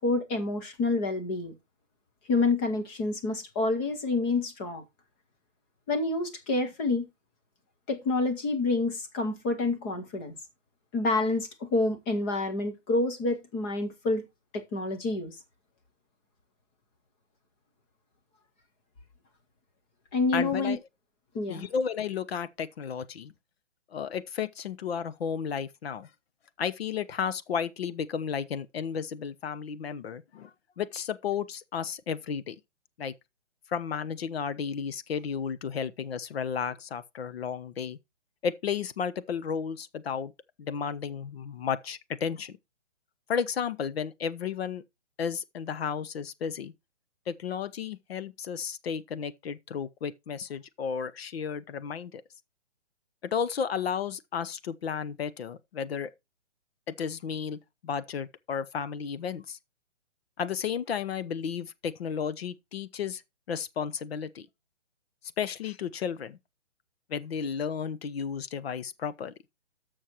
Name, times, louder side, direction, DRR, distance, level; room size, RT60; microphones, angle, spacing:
voice 1, 0.0-1.5 2.3-4.8 5.9-7.0 7.9-10.4 10.9-14.3 14.5-15.4 20.1-20.8 21.3-21.7, left 3 dB, 10° left, 0.5 m, -28 dB
voice 2, 20.3-20.8 21.5-23.3 23.9-26.1 26.6-30.5 30.8-32.6 33.0-33.1 33.7-38.0 38.4-40.3 40.6-42.6 43.3-44.8 45.2-46.7 47.3-52.2 53.3-56.1 56.9-59.6 60.4-63.2 63.5-64.5 65.4-66.4 67.1-69.3, left 7 dB, 55° left, 0.8 m, -33 dB
17.5 x 6.4 x 2.9 m
hypercardioid pair, 155°, 36 cm